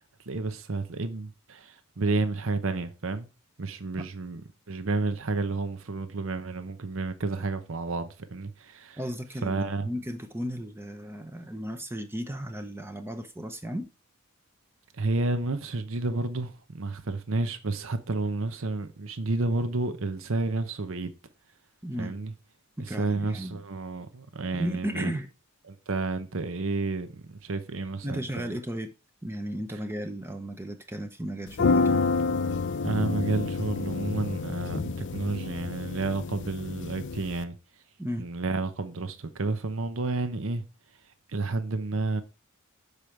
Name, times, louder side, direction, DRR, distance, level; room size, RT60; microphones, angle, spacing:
voice 1, 0.3-3.3 3.6-9.0 9.4-9.9 15.0-21.1 22.0-22.3 22.8-25.1 25.7-28.5 32.8-37.6 38.2-40.6 41.3-42.2, right 3 dB, 60° right, 0.8 m, -31 dB
voice 2, 9.0-13.9 21.8-22.1 22.8-23.6 24.5-25.3 28.0-28.9 29.2-32.0 38.0-38.3, equal, 10° right, 0.7 m, -35 dB
sound 1, 31.5-37.4, left 4 dB, 55° left, 0.5 m, -28 dB
6.9 x 5.0 x 4.5 m
head